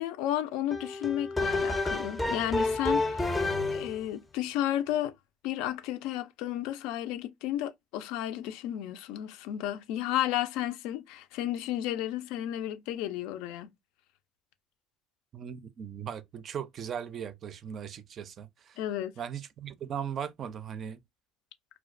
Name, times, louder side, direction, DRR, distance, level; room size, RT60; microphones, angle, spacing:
voice 1, 0.0-3.3 3.7-5.1 5.4-13.7 18.8-19.1, left 12 dB, 75° left, 0.3 m, -32 dB
sound 1, 0.7-4.1, left 2 dB, 10° left, 0.5 m, -29 dB
voice 2, 15.3-18.8 19.2-21.0, right 8 dB, 45° right, 0.4 m, -38 dB
2.3 x 2.1 x 2.4 m
supercardioid pair, 105°, 0 cm